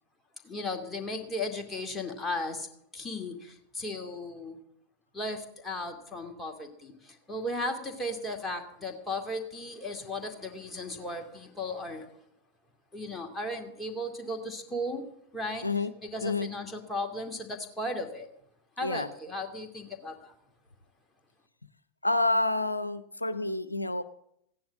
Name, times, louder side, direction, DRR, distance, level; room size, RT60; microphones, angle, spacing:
voice 1, 0.4-2.7 2.9-4.6 5.1-12.2 12.9-15.1 15.3-15.7 16.0-18.3 18.8-20.4, left 1 dB, 10° left, 2 dB, 2.4 m, -36 dB
voice 2, 22.0-24.0, left 2 dB, 85° left, 12 dB, 0.6 m, -28 dB
15.5 x 10.5 x 7.2 m, 0.74 s
figure-of-eight pair, 90°, 0 cm